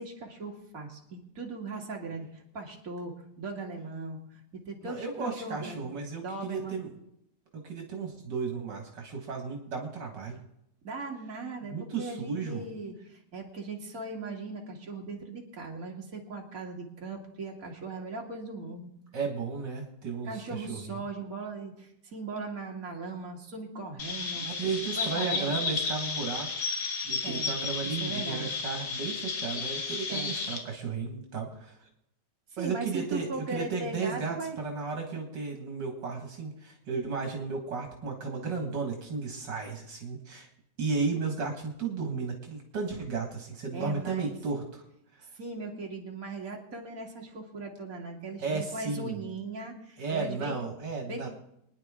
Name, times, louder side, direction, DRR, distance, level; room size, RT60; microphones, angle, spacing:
voice 1, 0.0-5.9 6.2-6.8 10.8-18.9 20.2-24.5 25.0-25.5 27.2-27.5 27.8-28.5 30.1-30.3 32.5-34.6 43.7-44.3 45.3-50.5 51.1-51.3, right 3 dB, 50° right, -1 dB, 2.6 m, -39 dB
voice 2, 4.8-6.9 7.5-10.4 11.6-12.6 19.1-21.0 24.4-26.5 27.0-31.8 32.6-40.5 40.8-44.8 45.1-45.3 48.4-49.2 50.0-51.3, right 4 dB, 75° right, 2 dB, 2.4 m, -34 dB
Chirp tweet, 24.0-30.6, left 4 dB, 85° left, 2.3 m, -33 dB
24.0 x 10.5 x 3.7 m, 0.78 s
omnidirectional pair, 1.9 m